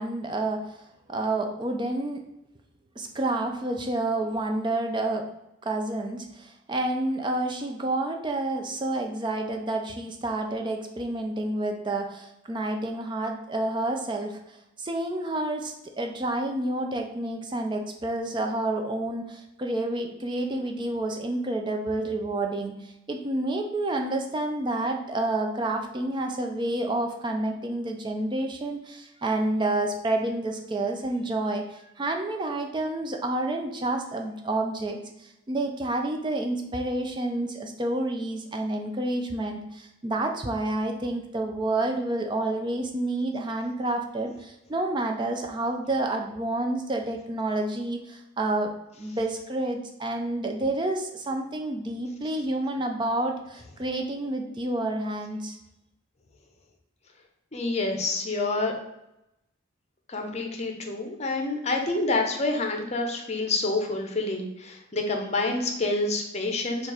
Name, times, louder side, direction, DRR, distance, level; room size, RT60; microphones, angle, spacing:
voice 1, 0.0-2.2 3.0-5.2 5.6-48.7 49.0-55.6, right 2 dB, 20° right, 4 dB, 0.3 m, -29 dB
voice 2, 57.5-58.7 60.1-66.9, left 2 dB, 30° left, 3 dB, 0.6 m, -28 dB
4.4 x 2.4 x 4.7 m, 0.86 s
head